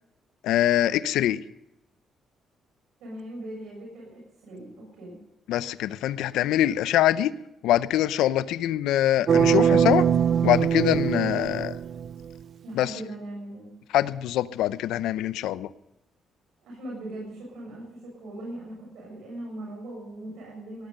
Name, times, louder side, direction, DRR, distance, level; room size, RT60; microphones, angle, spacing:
voice 1, 0.4-1.4 5.5-7.3 7.6-10.1 10.4-11.8 12.7-12.9 13.9-15.7, left 13 dB, 90° left, 16 dB, 0.7 m, -24 dB
voice 2, 3.0-5.2 12.6-13.7 16.6-20.9, right 1 dB, 85° right, -2 dB, 6.7 m, -39 dB
sound 1, 9.3-12.3, right 8 dB, 60° right, 0.5 m, -22 dB
18.0 x 13.0 x 5.4 m, 0.88 s
cardioid pair, 90°, 0 cm